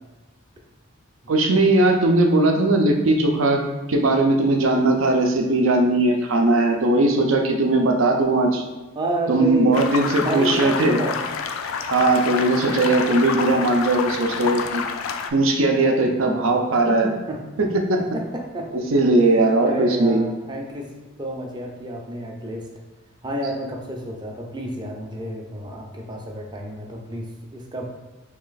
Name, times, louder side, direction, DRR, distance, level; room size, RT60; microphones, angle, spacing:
voice 1, 1.3-3.6 3.9-8.7 9.3-11.0 11.9-14.8 15.3-17.1 17.6-18.0 18.9-20.2, right 2 dB, 75° right, 3 dB, 0.5 m, -19 dB
voice 2, 8.9-11.2 15.7-17.4 18.1-18.7 19.2-20.9 21.2-22.7 23.2-27.8, right 1 dB, 20° right, 0 dB, 0.5 m, -30 dB
sound 1, 9.7-15.3, left 6 dB, 80° left, 0.3 m, -28 dB
3.2 x 3.0 x 3.9 m, 1.1 s
head